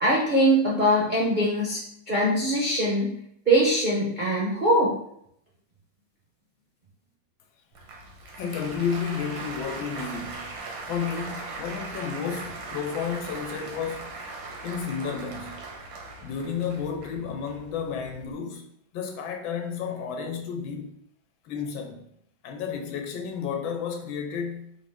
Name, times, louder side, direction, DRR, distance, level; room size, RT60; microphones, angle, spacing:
voice 1, 0.0-1.8 2.1-3.1 3.5-4.9, right 1 dB, 50° right, -6 dB, 0.6 m, -22 dB
Applause, 7.7-18.3, right 3 dB, 80° right, 1.6 m, -39 dB
voice 2, 8.4-10.6 10.9-14.2 14.6-15.6 16.2-21.0 21.4-22.1 22.4-24.9, left 6 dB, 85° left, 2 dB, 1.5 m, -32 dB
4.7 x 2.6 x 3.5 m, 0.72 s
omnidirectional pair, 2.1 m